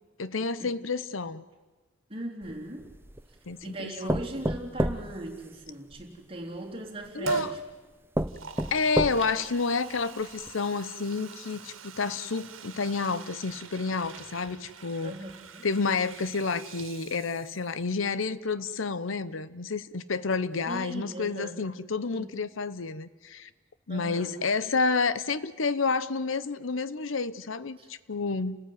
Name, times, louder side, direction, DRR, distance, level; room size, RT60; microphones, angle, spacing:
voice 1, 0.2-1.4 3.5-4.2 7.1-7.5 8.7-15.2 15.6-23.5 23.9-28.6, left 4 dB, 80° left, 15 dB, 0.8 m, -30 dB
voice 2, 2.1-2.9 3.6-7.6 15.0-15.7 20.7-21.6 22.1-22.4 23.9-24.4 27.8-27.9, right 1 dB, 30° right, -1 dB, 3.5 m, -39 dB
sound 1, 2.4-3.3 4.1-6.0 7.0-7.1 7.7-7.8 8.1-9.5 10.0-10.1 10.4-10.5, right 1 dB, 10° right, 0.8 m, -30 dB
Liquid, 7.2-7.6 8.2-17.8 18.1-18.2, right 4 dB, 90° right, 2.0 m, -40 dB
29.5 x 15.5 x 9.5 m, 1.3 s
head